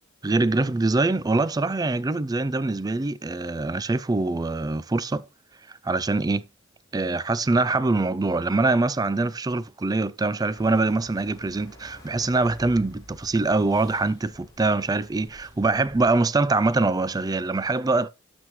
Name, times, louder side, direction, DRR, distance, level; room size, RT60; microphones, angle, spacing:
voice 1, 0.2-5.2 5.8-6.4 6.9-18.1, right 3 dB, 20° right, 0.4 m, -24 dB
sound 1, 10.5-16.2, left 1 dB, 20° left, 2.9 m, -48 dB
12.0 x 6.2 x 3.0 m
head